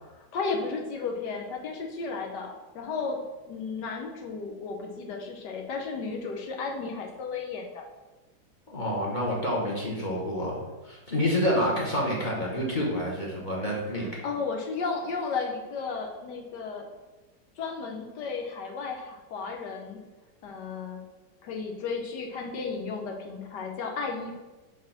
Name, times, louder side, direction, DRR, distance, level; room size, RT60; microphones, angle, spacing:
voice 1, 0.2-7.9 13.9-16.9 17.6-20.0 20.4-21.0 21.4-24.3, left 4 dB, 70° left, 2 dB, 1.3 m, -34 dB
voice 2, 8.7-14.1, equal, 30° left, -4 dB, 1.3 m, -28 dB
5.0 x 4.1 x 5.8 m, 1.2 s
omnidirectional pair, 2.0 m